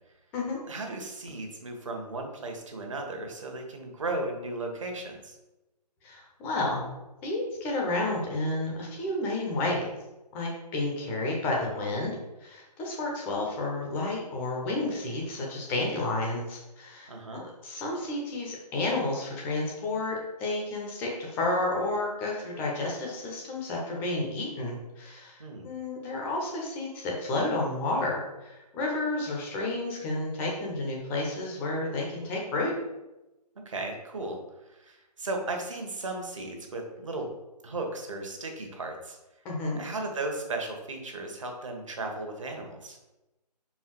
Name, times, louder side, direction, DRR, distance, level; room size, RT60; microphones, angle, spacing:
voice 1, 0.7-5.4 17.1-17.4 25.4-25.7 33.6-34.4 34.6-37.3 37.6-39.2 39.8-43.0, right 2 dB, 50° right, 3 dB, 1.4 m, -35 dB
voice 2, 6.0-6.9 7.2-9.8 10.3-12.1 12.4-32.7 39.4-39.8, left 2 dB, 10° left, -2 dB, 0.7 m, -31 dB
5.4 x 4.7 x 4.5 m, 1.0 s
figure-of-eight pair, 145°, 21 cm